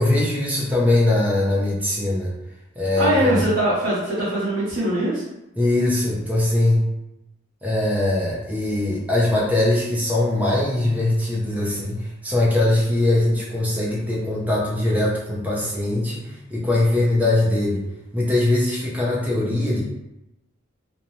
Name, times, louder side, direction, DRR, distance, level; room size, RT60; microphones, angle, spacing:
voice 1, 0.0-2.3 2.8-3.4 5.6-6.8 7.6-17.8 18.1-19.8, left 2 dB, 5° right, -5 dB, 0.5 m, -21 dB
voice 2, 3.0-5.2, right 1 dB, 60° right, -12 dB, 0.8 m, -21 dB
2.6 x 2.1 x 3.0 m, 0.90 s
head